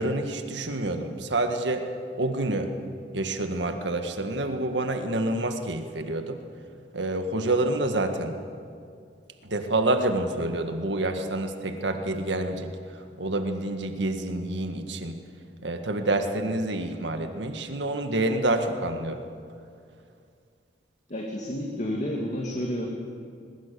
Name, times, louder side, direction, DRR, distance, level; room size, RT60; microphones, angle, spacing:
voice 1, 0.0-1.9 2.2-2.7 3.1-6.4 6.9-8.4 9.4-12.7 13.2-15.2 15.6-19.2, right 2 dB, 90° right, 6 dB, 1.8 m, -27 dB
voice 2, 21.1-22.9, equal, 40° left, -1 dB, 2.5 m, -30 dB
22.0 x 21.0 x 6.9 m, 2.3 s
head